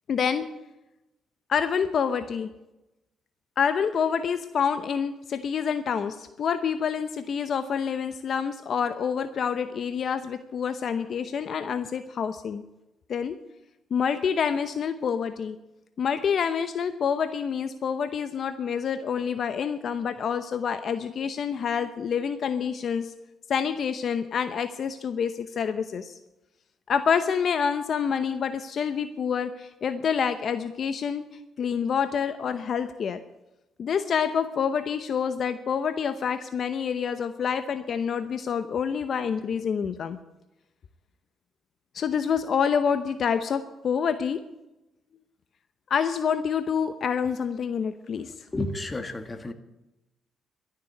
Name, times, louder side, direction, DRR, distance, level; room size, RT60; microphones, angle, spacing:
voice 1, 0.1-0.5 1.5-2.5 3.6-12.6 13.1-13.4 13.9-15.6 16.0-23.1 23.5-26.2 26.9-31.3 31.6-33.2 33.8-40.2 41.9-44.4 45.9-48.3, left 7 dB, 55° left, 10 dB, 0.8 m, -27 dB
voice 2, 48.5-49.5, left 2 dB, 25° left, 8 dB, 1.5 m, -31 dB
12.5 x 6.9 x 9.7 m, 0.94 s
cardioid pair, 90°, 0 cm